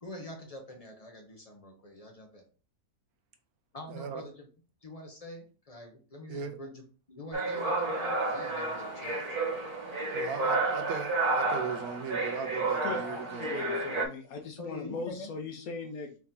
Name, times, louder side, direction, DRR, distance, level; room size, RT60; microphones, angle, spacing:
voice 1, 0.0-2.4 3.7-4.5 4.8-6.8 7.1-9.2 14.6-15.3, left 1 dB, 45° left, 0.5 m, -45 dB
voice 2, 3.9-4.2 6.3-6.6 10.1-13.8, right 6 dB, 70° right, 1.1 m, -38 dB
sound 1, 7.3-14.0, right 2 dB, 20° right, 1.0 m, -31 dB
voice 3, 12.8-16.2, left 3 dB, 70° left, 1.0 m, -39 dB
4.7 x 2.8 x 3.6 m
omnidirectional pair, 1.7 m